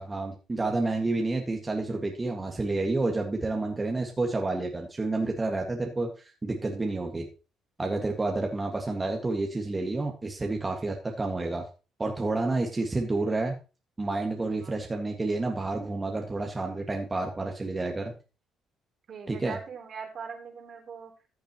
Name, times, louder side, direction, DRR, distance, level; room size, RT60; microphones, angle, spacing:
voice 1, 0.0-7.3 7.8-11.6 12.0-13.6 14.0-18.1 19.3-19.6, right 2 dB, 25° right, 2 dB, 1.9 m, -29 dB
voice 2, 19.1-21.1, right 6 dB, 55° right, 3 dB, 3.3 m, -41 dB
14.5 x 7.1 x 3.0 m, 0.32 s
supercardioid pair, 75°, 0 cm